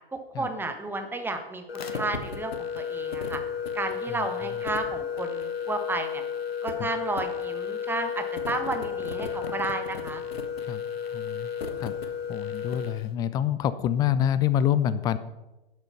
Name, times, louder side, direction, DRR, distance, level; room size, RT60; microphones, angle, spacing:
voice 1, 0.1-3.4 3.7-6.2 6.6-10.2, right 2 dB, 5° right, 6 dB, 1.2 m, -32 dB
sound 1, 1.7-13.0, left 7 dB, 75° left, 1.4 m, -33 dB
voice 2, 11.1-11.5 11.8-12.0 12.3-15.2, left 10 dB, 15° left, 15 dB, 0.4 m, -26 dB
12.0 x 7.5 x 5.7 m, 1.0 s
figure-of-eight pair, 105°, 30 cm